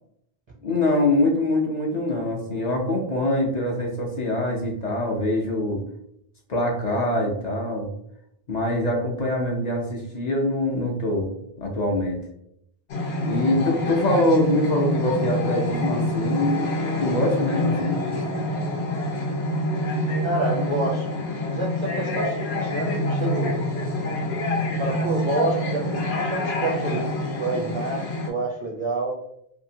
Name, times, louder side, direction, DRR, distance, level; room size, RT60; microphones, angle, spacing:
voice 1, 0.6-5.8 6.5-7.9 8.5-11.3 11.6-12.2 13.2-16.6 17.0-18.0, left 1 dB, 50° left, -1 dB, 0.6 m, -24 dB
sound 1, 12.9-28.3, left 1 dB, 85° left, 0.9 m, -26 dB
voice 2, 20.2-21.1 21.4-23.6 24.8-29.2, right 2 dB, 40° right, -3 dB, 0.4 m, -28 dB
2.8 x 2.5 x 2.7 m, 0.74 s
omnidirectional pair, 1.0 m